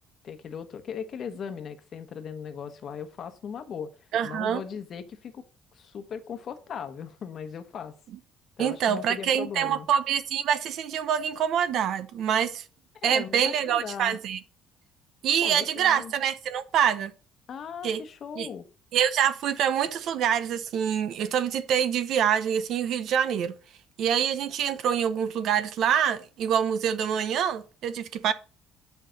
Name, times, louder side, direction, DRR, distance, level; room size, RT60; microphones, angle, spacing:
voice 1, 0.2-5.4 5.7-7.9 8.6-9.9 13.0-14.2 15.4-16.1 17.5-18.7, left 7 dB, 35° left, 1.2 m, -38 dB
voice 2, 4.1-4.6 8.6-12.6 13.0-14.4 15.2-17.1 17.8-18.0 18.4-18.5 18.9-23.5 24.0-28.3, right 8 dB, 50° right, 0.8 m, -25 dB
10.5 x 5.8 x 5.3 m
cardioid pair, 170°, 0 cm